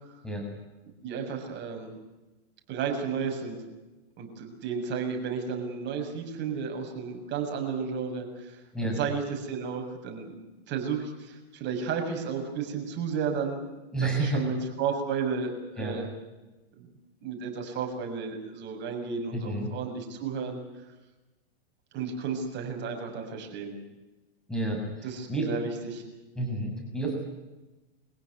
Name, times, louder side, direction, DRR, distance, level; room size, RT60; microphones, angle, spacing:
voice 1, 1.0-1.9 2.7-3.6 4.2-10.3 10.7-13.7 14.0-16.1 16.8-16.9 17.2-20.6 21.9-23.7 25.0-26.0, right 6 dB, 35° right, 3 dB, 7.0 m, -33 dB
voice 2, 13.9-14.4 15.8-16.0 19.3-19.7 24.5-25.5 26.3-27.2, right 2 dB, ahead, 0 dB, 6.8 m, -30 dB
25.0 x 16.5 x 9.8 m, 1.1 s
hypercardioid pair, 120°, 32 cm